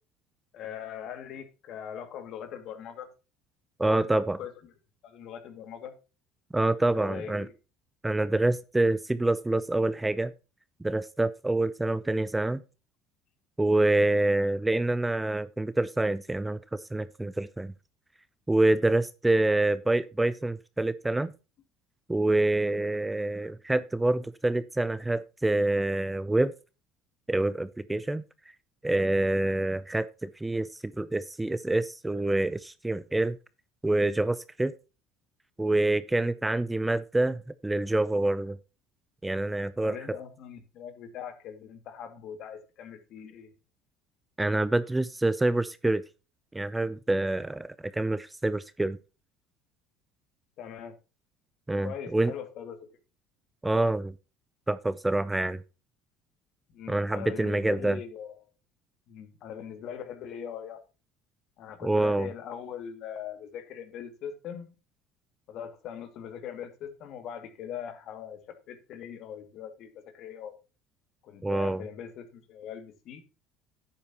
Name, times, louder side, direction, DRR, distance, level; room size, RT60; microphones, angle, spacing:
voice 1, 0.5-3.1 3.8-4.5 5.0-5.9 6.9-7.5 19.5-19.6 39.8-43.5 50.6-51.0 51.8-52.9 56.7-58.3 59.1-60.8 61.6-64.7 65.5-70.5 71.2-73.2, left 8 dB, 60° left, 2.3 m, -41 dB
voice 2, 3.8-4.4 6.5-7.5 8.0-10.3 10.8-12.6 13.6-17.7 18.5-21.3 22.1-26.5 27.3-28.2 28.8-33.4 33.8-34.7 35.6-38.6 39.2-40.0 44.4-46.0 46.5-49.0 51.7-52.3 53.6-54.1 54.7-55.6 56.9-58.0 61.8-62.3 71.4-71.8, right 2 dB, 10° right, 0.6 m, -26 dB
11.0 x 8.6 x 2.9 m
supercardioid pair, 105°, 0 cm